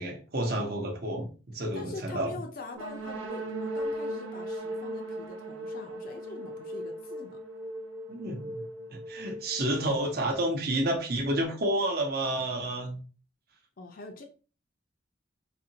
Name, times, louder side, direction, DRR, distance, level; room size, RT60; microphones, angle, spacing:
voice 1, 0.0-2.3 8.1-8.6 8.9-13.0, right 1 dB, 50° right, 1 dB, 0.8 m, -30 dB
voice 2, 1.7-7.4 13.8-14.2, left 3 dB, 45° left, 3 dB, 0.5 m, -44 dB
sound 1, 2.7-10.4, right 1 dB, 80° right, 1.0 m, -38 dB
4.1 x 2.8 x 2.8 m, 0.36 s
head